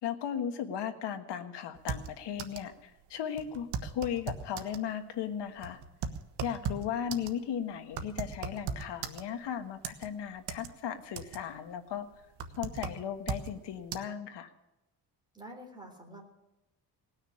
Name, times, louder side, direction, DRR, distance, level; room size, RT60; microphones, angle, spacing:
voice 1, 0.0-5.8 6.4-12.1 12.6-14.5, left 9 dB, 85° left, 8 dB, 1.6 m, -36 dB
sound 1, 1.8-2.7 3.0-3.1 3.4-4.9 5.4-9.5 9.8-10.7 11.0-11.6 11.9-13.5 13.9-14.0, right 6 dB, 90° right, 1.3 m, -38 dB
voice 2, 15.3-16.3, right 1 dB, 10° right, 1 dB, 3.6 m, -47 dB
19.0 x 6.5 x 9.8 m, 0.96 s
cardioid pair, 130°, 40 cm